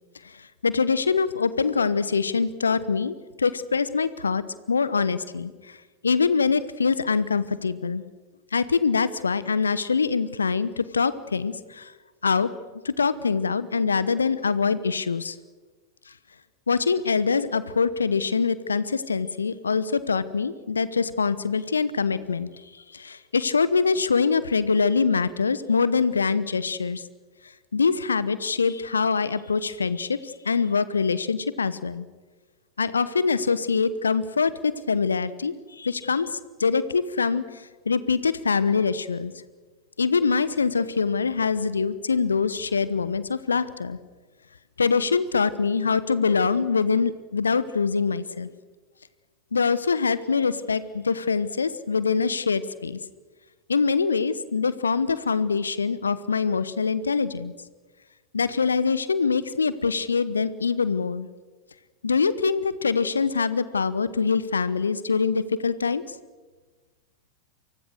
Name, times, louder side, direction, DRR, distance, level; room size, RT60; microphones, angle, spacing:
voice 1, 0.2-5.8 6.0-8.0 8.5-11.9 12.2-12.5 12.8-15.4 16.1-16.2 16.7-27.1 27.7-32.1 32.8-39.3 40.0-44.0 44.8-48.5 49.5-53.0 53.7-57.5 58.3-61.3 62.0-66.2, left 5 dB, 75° left, 16 dB, 1.0 m, -24 dB
30.0 x 24.5 x 6.6 m, 1.3 s
figure-of-eight pair, 90°, 0 cm